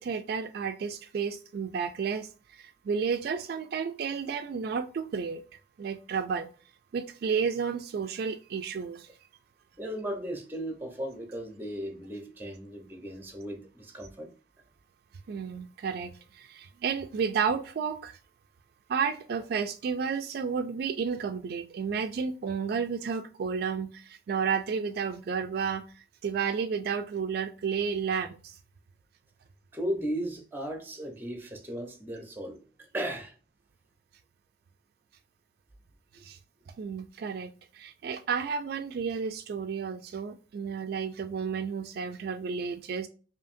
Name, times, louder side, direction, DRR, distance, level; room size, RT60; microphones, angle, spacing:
voice 1, 0.0-5.4 5.8-6.5 6.9-9.1 15.3-18.2 18.9-28.6 36.2-36.4 36.8-43.1, right 6 dB, 60° right, 0.3 m, -32 dB
voice 2, 9.8-14.3 29.7-32.6 32.9-33.3 36.1-36.3, right 1 dB, 10° right, 0.8 m, -36 dB
4.9 x 2.7 x 2.6 m
head